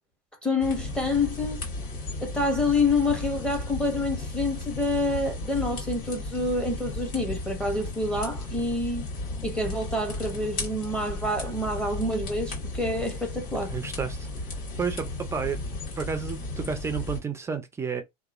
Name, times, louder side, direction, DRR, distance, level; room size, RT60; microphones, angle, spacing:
voice 1, 0.4-1.6 2.2-9.0 9.4-13.8, left 2 dB, 5° left, 0.8 m, -27 dB
sound 1, 0.6-17.2, left 2 dB, 55° left, 1.7 m, -35 dB
voice 2, 13.7-14.3 14.8-15.6 16.0-18.0, right 6 dB, 15° right, 0.3 m, -31 dB
2.8 x 2.3 x 2.4 m
supercardioid pair, 140°, 21 cm